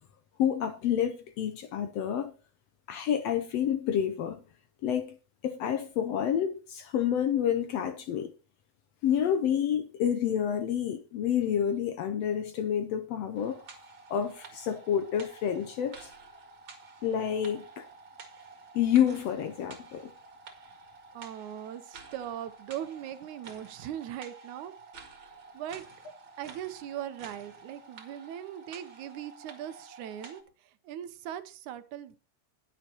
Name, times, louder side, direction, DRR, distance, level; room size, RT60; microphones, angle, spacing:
voice 1, 0.4-2.3 2.9-4.4 4.8-5.2 5.4-8.3 9.0-13.6 14.1-16.1 17.0-17.8 18.7-20.1, left 9 dB, 70° left, 1.7 m, -29 dB
sound 1, 13.3-30.4, right 4 dB, 45° right, 2.5 m, -50 dB
voice 2, 21.1-24.7 25.5-25.8 26.4-32.2, right 11 dB, 80° right, 2.4 m, -40 dB
20.5 x 7.4 x 2.9 m
omnidirectional pair, 3.4 m